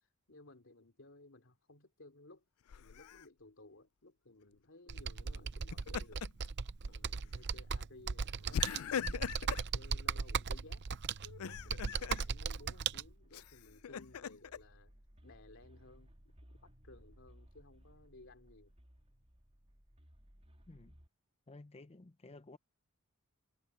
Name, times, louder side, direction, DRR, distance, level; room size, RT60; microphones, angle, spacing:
voice 1, 0.3-2.4 2.7-6.2 6.8-9.1 9.5-10.8 11.4-14.9 15.2-16.1 16.4-18.7, left 2 dB, 65° left, 3.2 m, -59 dB
Laughter, 2.7-3.2 5.5-6.5 6.9-7.1 8.5-9.7 11.2-12.3 13.3-14.6, left 7 dB, 85° left, 0.4 m, -40 dB
Computer keyboard, 4.9-13.0, right 6 dB, 55° right, 0.6 m, -38 dB
sound 1, 11.3-21.1, equal, 30° right, 3.1 m, -61 dB
voice 2, 21.5-22.6, left 2 dB, 30° left, 0.6 m, -54 dB
head